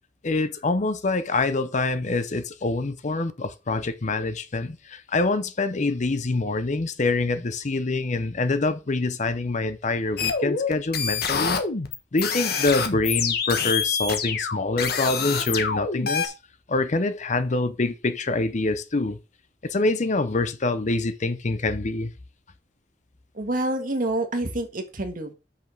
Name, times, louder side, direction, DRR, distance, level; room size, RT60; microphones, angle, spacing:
voice 1, 0.2-11.6 12.1-16.3 16.7-19.2 19.6-22.1, left 3 dB, 40° left, 0.7 m, -25 dB
sound 1, 10.2-16.3, left 6 dB, 60° left, 1.2 m, -26 dB
voice 2, 23.3-25.3, right 1 dB, 50° right, 1.5 m, -27 dB
5.7 x 5.2 x 6.0 m
head